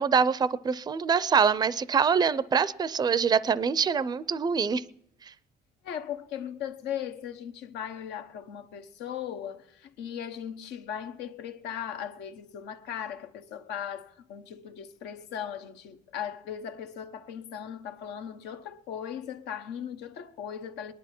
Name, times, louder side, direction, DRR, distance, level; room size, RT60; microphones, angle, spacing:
voice 1, 0.0-4.8, right 6 dB, 25° right, 0.5 m, -24 dB
voice 2, 5.8-20.9, left 9 dB, 85° left, 1.1 m, -38 dB
20.0 x 11.0 x 4.4 m
cardioid pair, 110°, 17 cm